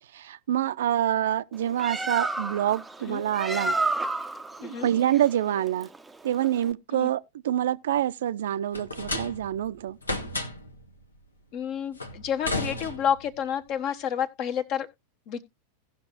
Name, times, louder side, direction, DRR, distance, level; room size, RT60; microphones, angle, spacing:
voice 1, 0.1-3.8 4.6-5.9 6.2-10.0, right 11 dB, 60° right, 0.5 m, -26 dB
Bird, 1.5-6.7, right 2 dB, 5° right, 0.6 m, -31 dB
sound 1, 8.7-9.6 10.0-10.8 12.0-13.4, left 2 dB, 80° left, 1.1 m, -32 dB
voice 2, 11.5-14.9 15.3-15.4, left 8 dB, 40° left, 1.0 m, -29 dB
17.0 x 6.0 x 2.5 m
figure-of-eight pair, 90°, 0 cm